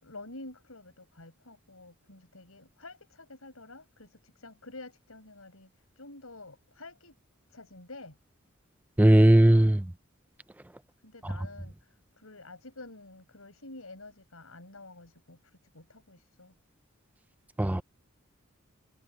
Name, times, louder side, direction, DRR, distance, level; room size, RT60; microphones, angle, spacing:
voice 1, 0.0-5.7 6.0-7.1 7.5-8.2 11.0-11.7 12.2-15.4 15.7-16.5, left 2 dB, 85° left, 6.4 m, -48 dB
voice 2, 9.0-9.8 17.6-17.8, right 1 dB, 10° right, 0.4 m, -18 dB
head